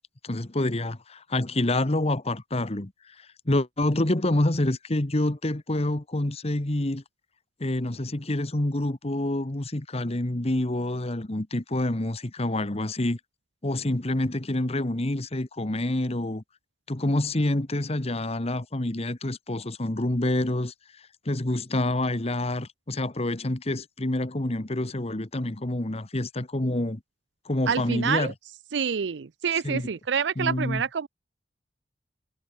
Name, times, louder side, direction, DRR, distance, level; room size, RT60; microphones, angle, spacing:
voice 1, 0.2-7.0 7.6-13.2 13.6-16.4 16.9-20.7 21.2-27.0 27.4-28.3 29.5-29.9 30.4-30.8, left 1 dB, 35° left, 1.4 m, -27 dB
voice 2, 27.7-28.3 28.7-31.1, right 6 dB, 90° right, 0.5 m, -27 dB
head